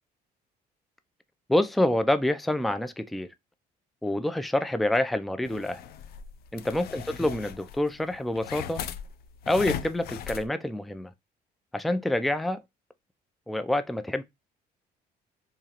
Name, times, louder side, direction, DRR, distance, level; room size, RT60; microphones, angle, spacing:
voice 1, 1.5-3.3 4.0-5.8 6.5-8.8 9.5-11.1 11.7-12.6 13.5-14.2, left 1 dB, ahead, 0.3 m, -27 dB
sound 1, 5.4-10.5, left 9 dB, 65° left, 0.5 m, -39 dB
3.6 x 3.0 x 2.8 m
cardioid pair, 110°, 17 cm